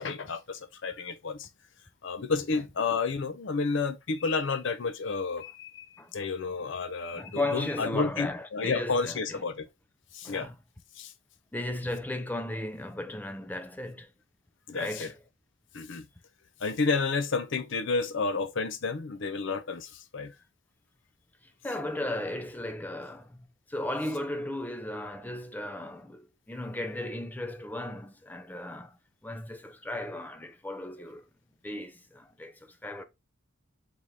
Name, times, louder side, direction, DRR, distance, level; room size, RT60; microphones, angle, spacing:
voice 1, 0.0-1.5 2.0-9.7 10.1-10.5 10.9-11.1 14.7-15.1 15.7-16.1 16.6-20.4, left 4 dB, 60° left, 0.5 m, -31 dB
voice 2, 7.1-9.4 10.2-10.5 11.5-14.1 14.7-15.2 21.4-29.0 29.2-31.2 31.6-33.0, left 1 dB, 10° left, 0.4 m, -36 dB
4.1 x 3.6 x 3.1 m
head